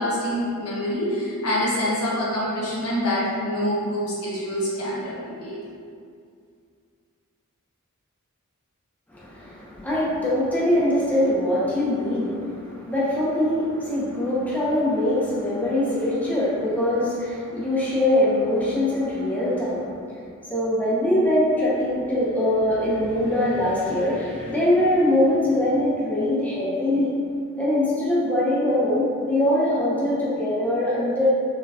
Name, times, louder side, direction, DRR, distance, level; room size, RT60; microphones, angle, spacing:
voice 1, 0.0-5.6, equal, 75° left, -7 dB, 0.9 m, -26 dB
voice 2, 9.1-20.0 20.5-27.1 27.6-31.3, left 1 dB, 5° left, -8 dB, 0.5 m, -22 dB
3.9 x 2.2 x 2.7 m, 2.2 s
head